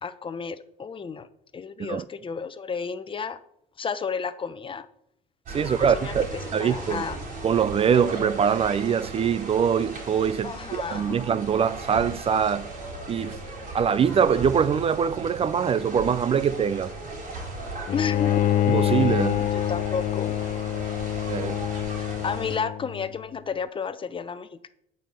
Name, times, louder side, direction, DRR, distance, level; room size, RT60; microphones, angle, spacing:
voice 1, 0.0-1.3 1.5-3.4 3.8-4.9 5.6-7.2 10.4-11.2 17.9-18.5 19.4-20.4 22.0-24.7, left 6 dB, 30° left, 0.8 m, -32 dB
voice 2, 5.5-6.3 6.5-7.0 7.4-12.7 13.1-13.4 13.7-16.9 18.7-19.5 21.3-21.6, right 7 dB, 35° right, 0.4 m, -23 dB
sound 1, 5.5-22.6, right 2 dB, 55° right, 4.7 m, -37 dB
Bowed string instrument, 17.9-23.1, left 12 dB, 50° left, 0.4 m, -26 dB
9.2 x 5.5 x 7.6 m
cardioid pair, 110°, 17 cm